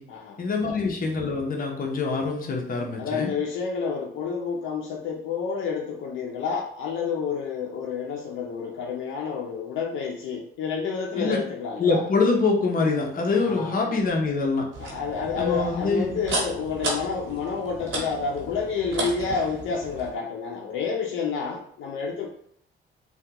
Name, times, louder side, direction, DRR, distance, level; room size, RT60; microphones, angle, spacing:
voice 1, 0.4-3.3 11.2-11.4 11.8-14.7 15.3-16.2, left 4 dB, 45° left, 1 dB, 0.8 m, -24 dB
voice 2, 3.0-12.0 13.4-13.8 14.8-22.3, left 5 dB, 80° left, 0 dB, 0.5 m, -29 dB
sound 1, 14.7-20.1, right 2 dB, 80° right, 1.1 m, -34 dB
3.4 x 2.2 x 2.8 m, 0.66 s
cardioid pair, 90°, 20 cm